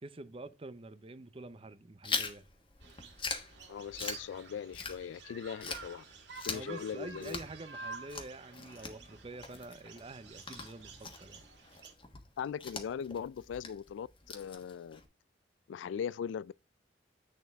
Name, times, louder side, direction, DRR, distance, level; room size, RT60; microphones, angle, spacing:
voice 1, 0.0-2.4 6.5-11.4, right 2 dB, 30° right, 0.6 m, -47 dB
Chewing mastication, 2.0-5.3 5.6-15.0, left 5 dB, 30° left, 1.3 m, -42 dB
sound 1, 2.8-11.9, right 4 dB, 75° right, 1.8 m, -50 dB
voice 2, 3.7-6.0 6.3-7.4 12.4-15.0 15.7-16.5, left 7 dB, 85° left, 0.3 m, -40 dB
8.5 x 6.6 x 3.5 m
head